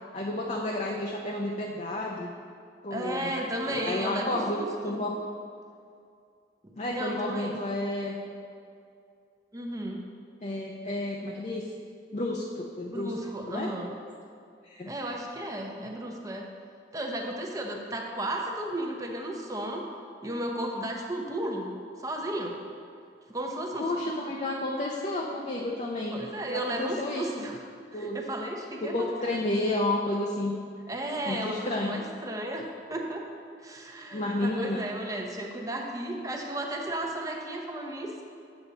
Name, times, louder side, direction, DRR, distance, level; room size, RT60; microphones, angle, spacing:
voice 1, 0.1-2.3 2.8-3.3 3.7-5.1 6.8-8.2 10.4-11.6 12.1-13.1 13.5-13.7 14.6-14.9 23.8-26.2 26.5-27.4 27.9-28.2 28.8-30.5 31.2-32.0 34.1-34.9, left 1 dB, 40° left, -1 dB, 0.6 m, -31 dB
voice 2, 2.9-5.0 6.6-7.6 9.5-10.0 12.9-13.9 14.9-16.5 16.9-19.8 20.2-21.7 22.0-22.6 23.3-24.1 26.1-27.6 27.9-29.4 30.9-32.6 32.9-33.3 33.6-38.1, right 1 dB, 20° right, 1 dB, 0.8 m, -34 dB
7.8 x 7.0 x 4.0 m, 2.4 s
head